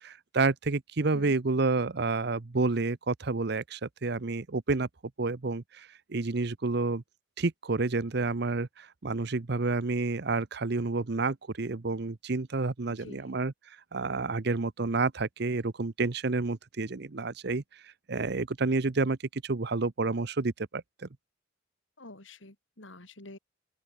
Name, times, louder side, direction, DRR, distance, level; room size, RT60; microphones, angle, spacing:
voice 1, 0.0-4.9 5.2-7.0 7.4-13.5 13.9-21.1, right 3 dB, 60° right, 0.8 m, -29 dB
voice 2, 12.9-13.3 22.0-23.4, left 2 dB, 75° left, 3.8 m, -48 dB
open air
head